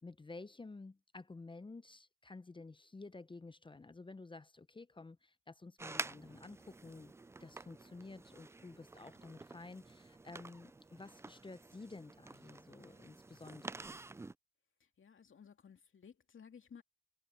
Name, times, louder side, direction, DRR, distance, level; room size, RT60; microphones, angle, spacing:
voice 1, 0.0-7.1 7.4-14.0, left 3 dB, 15° left, 0.7 m, -52 dB
sound 1, 5.8-14.3, right 3 dB, 10° right, 0.3 m, -49 dB
voice 2, 14.8-16.8, left 7 dB, 40° left, 2.5 m, -57 dB
cardioid pair, 90°, 30 cm